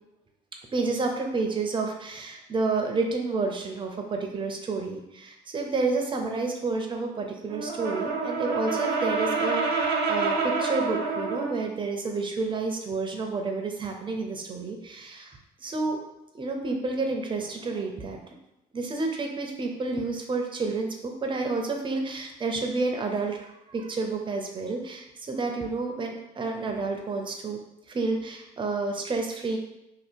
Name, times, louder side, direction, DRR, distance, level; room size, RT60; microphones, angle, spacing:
voice 1, 0.7-16.1 16.3-18.2 18.7-27.6 27.9-29.6, right 3 dB, 30° right, 2 dB, 0.7 m, -30 dB
Brass instrument, 7.5-11.7, right 4 dB, 75° right, 0.7 m, -27 dB
2.9 x 2.7 x 4.4 m, 0.89 s
cardioid pair, 110°, 17 cm